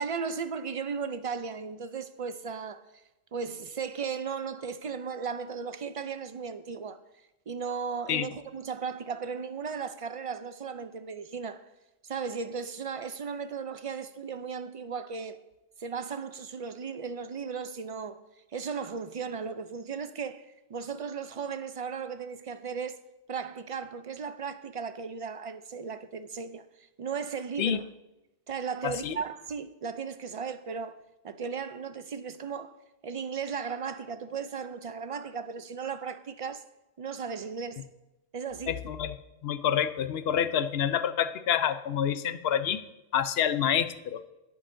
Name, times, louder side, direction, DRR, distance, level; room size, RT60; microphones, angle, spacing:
voice 1, 0.0-3.0 3.3-7.0 7.5-11.7 12.0-15.4 15.8-18.2 18.5-23.0 23.3-27.9 28.5-31.0 31.2-32.7 33.0-36.6 37.0-37.9 38.3-38.8, right 6 dB, 65° right, 0.3 m, -36 dB
voice 2, 28.8-29.2 38.7-39.1 39.4-42.8 43.1-44.2, left 9 dB, 65° left, 0.8 m, -27 dB
18.0 x 8.7 x 2.6 m
omnidirectional pair, 1.2 m